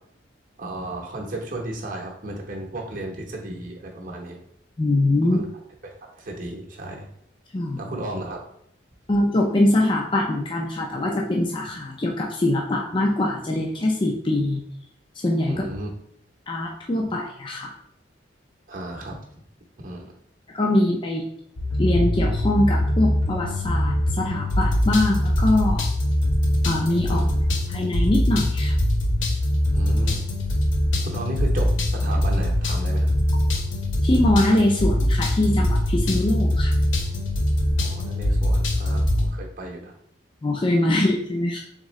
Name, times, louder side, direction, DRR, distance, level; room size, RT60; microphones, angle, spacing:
voice 1, 0.6-4.4 5.2-5.4 5.8-7.1 7.8-8.4 15.5-15.9 18.7-19.2 19.8-20.1 27.1-27.3 29.7-30.2 31.1-33.1 37.8-39.9 40.9-41.0, right 1 dB, 45° right, 0 dB, 0.8 m, -34 dB
voice 2, 4.8-5.5 7.5-7.9 9.1-14.6 15.2-15.6 16.5-17.7 20.5-21.2 21.8-25.9 26.6-27.2 27.7-28.8 34.0-36.7 40.4-41.6, left 1 dB, 25° left, -1 dB, 0.4 m, -23 dB
sound 1, 21.6-39.3, left 1 dB, 80° left, 0.7 m, -22 dB
3.7 x 3.6 x 3.1 m, 0.69 s
head